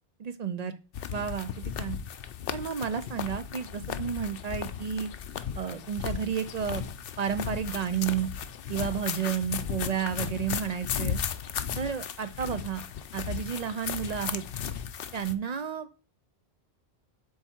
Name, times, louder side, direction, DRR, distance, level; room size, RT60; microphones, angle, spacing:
voice 1, 0.2-0.8 1.1-2.0 2.5-5.1 5.6-6.8 7.2-8.3 8.7-11.2 11.8-12.8 13.1-14.4 15.1-16.0, right 8 dB, 50° right, 11 dB, 0.5 m, -31 dB
sound 1, 0.9-15.4, left 8 dB, 65° left, 0.7 m, -35 dB
7.7 x 3.4 x 4.4 m, 0.37 s
omnidirectional pair, 1.1 m